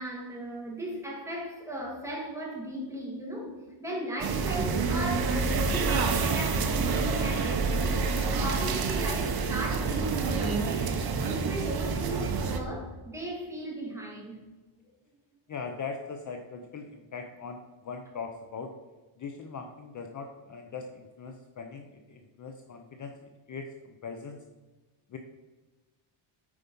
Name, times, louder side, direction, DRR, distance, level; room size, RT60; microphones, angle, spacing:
voice 1, 0.0-11.0 11.2-14.4, right 1 dB, 5° right, -3 dB, 2.2 m, -37 dB
sound 1, 4.2-12.6, right 4 dB, 50° right, 1.0 m, -28 dB
voice 2, 15.5-18.7 19.2-24.4 25.1-25.2, left 5 dB, 40° left, 4 dB, 0.7 m, -40 dB
8.5 x 5.0 x 5.3 m, 1.2 s
cardioid pair, 150°, 49 cm